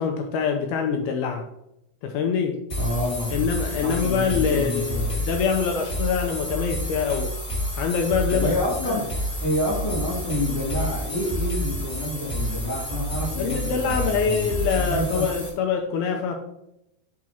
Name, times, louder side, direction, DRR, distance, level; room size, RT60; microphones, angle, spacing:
voice 1, 0.0-1.5 2.0-2.6 3.3-7.3 7.8-8.5 8.9-9.0 13.4-16.4, left 6 dB, 80° left, 3 dB, 2.3 m, -25 dB
sound 1, 2.7-15.5, equal, 25° left, 1.8 m, -29 dB
voice 2, 2.8-3.5 3.8-5.2 8.3-9.1 9.4-15.3, equal, 40° left, -4 dB, 3.4 m, -28 dB
6.2 x 4.9 x 5.7 m, 0.82 s
omnidirectional pair, 5.1 m